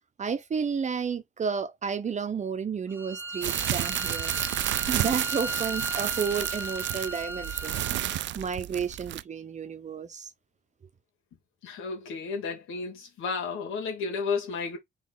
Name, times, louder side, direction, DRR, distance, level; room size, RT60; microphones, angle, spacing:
voice 1, 0.2-4.3 4.9-7.8 8.3-10.3, right 6 dB, 35° right, 0.8 m, -32 dB
Bowed string instrument, 2.9-8.3, right 1 dB, 10° right, 1.4 m, -36 dB
sound 1, 3.4-9.2, right 14 dB, 70° right, 0.4 m, -31 dB
voice 2, 11.6-14.8, left 5 dB, 85° left, 2.1 m, -32 dB
4.0 x 3.3 x 3.9 m
cardioid pair, 90°, 20 cm